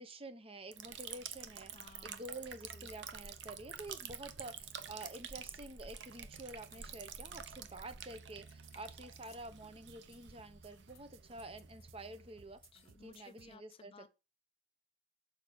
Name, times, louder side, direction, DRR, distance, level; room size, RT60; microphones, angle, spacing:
voice 1, 0.0-12.6 13.0-14.1, right 2 dB, 30° right, 0.9 m, -49 dB
Liquid, 0.7-13.2, right 7 dB, 65° right, 0.9 m, -49 dB
sound 1, 0.9-1.3 2.1-2.3 2.8-3.2 3.8-4.3 5.0-5.3 5.8-6.0 6.6-6.9 7.6-8.0 8.3-9.5 10.0-10.4 10.9-11.2 11.6-11.9 12.5-12.9, left 11 dB, 50° left, 1.1 m, -67 dB
voice 2, 1.7-2.2 2.7-2.9 12.7-14.1, left 4 dB, 30° left, 0.3 m, -58 dB
sound 2, 3.7-13.6, right 5 dB, 90° right, 0.6 m, -66 dB
7.0 x 4.9 x 6.3 m
head